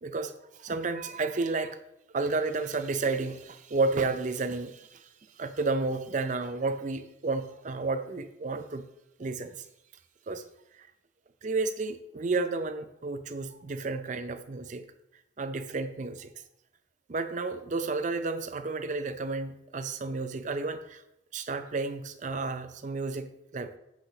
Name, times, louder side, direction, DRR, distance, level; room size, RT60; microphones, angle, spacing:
voice 1, 0.0-0.3 0.6-1.8 2.1-5.1 5.4-8.9 9.2-9.7 10.3-10.4 10.8-10.9 11.4-14.9 15.4-16.3 17.1-21.0 21.3-23.7, right 3 dB, 40° right, 9 dB, 0.5 m, -31 dB
8.7 x 5.7 x 2.8 m, 0.84 s
head